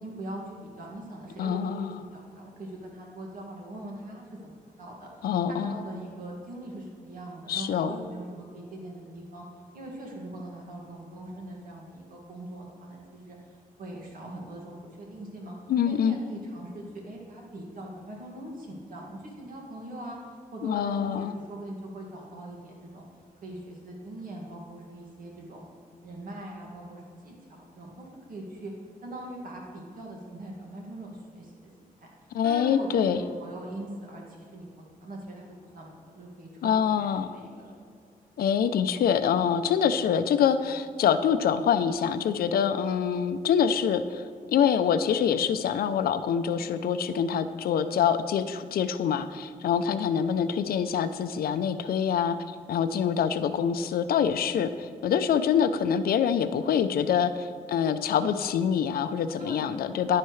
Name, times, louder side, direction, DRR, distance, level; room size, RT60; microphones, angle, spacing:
voice 1, 0.0-9.4 9.7-13.4 13.8-15.5 15.8-20.2 20.5-23.0 23.4-25.6 26.0-28.7 29.0-34.7 35.0-37.7 59.4-60.2, right 1 dB, 65° right, -2 dB, 2.0 m, -41 dB
voice 2, 1.4-2.0 5.2-5.7 7.5-8.0 15.7-16.2 20.6-21.3 32.3-33.2 36.6-37.4 38.4-52.4 52.7-60.2, left 8 dB, 85° left, 11 dB, 0.5 m, -25 dB
10.5 x 10.0 x 3.2 m, 2.2 s
wide cardioid pair, 160°, 15 cm